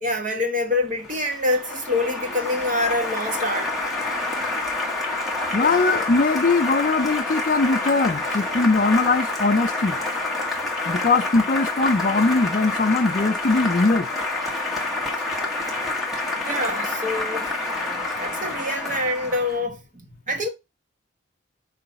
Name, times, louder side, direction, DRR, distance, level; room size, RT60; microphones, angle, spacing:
voice 1, 0.0-3.7 5.6-5.8 12.9-13.0 16.4-17.5 18.2-19.8 20.3-20.5, left 2 dB, 40° right, 1.4 m, -25 dB
Applause, 0.7-19.6, left 2 dB, ahead, 1.5 m, -28 dB
voice 2, 5.5-10.0 10.9-14.1, left 3 dB, 45° left, 0.5 m, -20 dB
5.7 x 3.2 x 5.5 m
head